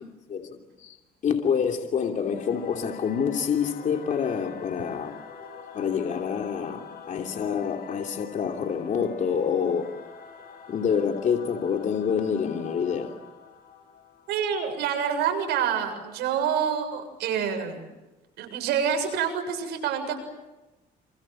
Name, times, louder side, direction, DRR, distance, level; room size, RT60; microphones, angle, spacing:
voice 1, 0.3-1.0 1.2-5.1 5.7-10.0 10.7-13.2, left 7 dB, 50° left, 3 dB, 3.0 m, -27 dB
Singing / Musical instrument, 2.2-15.1, left 6 dB, 65° left, 6.8 m, -45 dB
voice 2, 14.3-17.8 18.4-20.2, right 8 dB, 80° right, 6 dB, 7.1 m, -27 dB
28.5 x 27.5 x 7.6 m, 1.1 s
cardioid pair, 110°, 17 cm